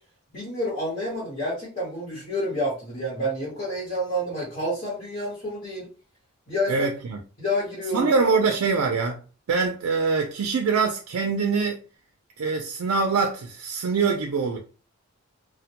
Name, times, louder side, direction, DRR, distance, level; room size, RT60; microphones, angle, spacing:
voice 1, 0.3-5.9 6.5-6.9 7.4-8.1, equal, 40° left, 1.0 m, -29 dB
voice 2, 6.7-7.2 7.9-9.2 9.5-11.8 12.4-14.6, right 4 dB, 80° right, 0.4 m, -24 dB
2.1 x 2.1 x 2.8 m
head